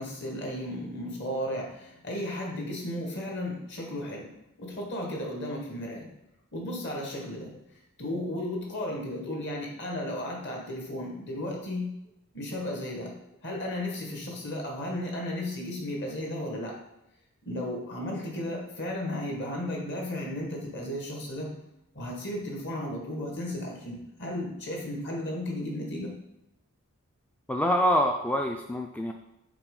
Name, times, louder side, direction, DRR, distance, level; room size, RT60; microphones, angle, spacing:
voice 1, 0.0-4.3 4.6-6.1 6.5-7.5 8.0-11.9 12.3-13.1 13.4-16.8 17.4-21.5 22.0-26.1, left 1 dB, 55° left, 0 dB, 1.6 m, -34 dB
voice 2, 27.5-29.1, equal, 5° left, 3 dB, 0.3 m, -25 dB
5.9 x 4.0 x 5.3 m, 0.87 s
head